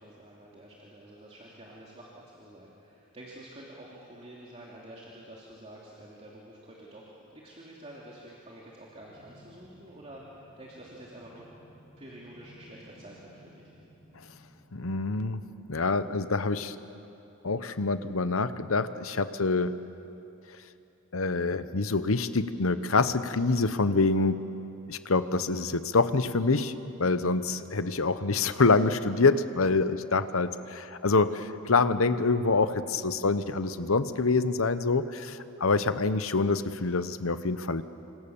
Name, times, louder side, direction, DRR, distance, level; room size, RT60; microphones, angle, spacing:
voice 1, 0.0-11.4 12.0-13.7, right 1 dB, 30° right, -4 dB, 2.8 m, -48 dB
sound 1, 8.9-15.7, equal, 5° left, 6.3 m, -57 dB
voice 2, 14.7-15.4 15.7-16.7 17.4-19.7 21.1-24.5 24.9-37.8, left 3 dB, 75° left, 12 dB, 1.0 m, -26 dB
28.0 x 25.5 x 7.2 m, 2.9 s
head